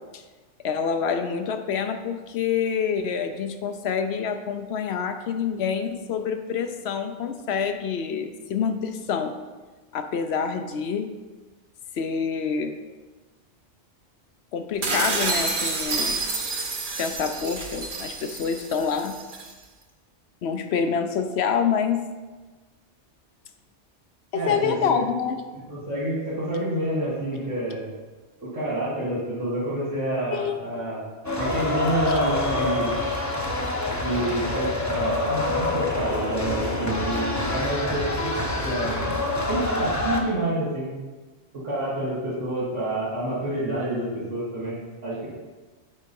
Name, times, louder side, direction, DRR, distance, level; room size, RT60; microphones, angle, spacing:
voice 1, 0.6-9.3 9.9-11.1 11.9-12.8 14.5-16.2 17.0-19.2 20.4-22.0 24.3-25.5 30.3-30.6, left 6 dB, 65° left, 8 dB, 0.8 m, -27 dB
sound 1, 14.8-19.5, right 3 dB, 50° right, 1.0 m, -29 dB
voice 2, 24.3-25.0 25.7-27.9 28.4-31.0 31.4-33.0 34.0-38.3 38.6-39.2 39.5-40.9 41.6-45.3, right 1 dB, 85° right, -11 dB, 2.3 m, -28 dB
sound 2, 31.2-40.2, left 2 dB, 15° left, 0.7 m, -26 dB
8.4 x 4.1 x 5.2 m, 1.3 s
omnidirectional pair, 1.2 m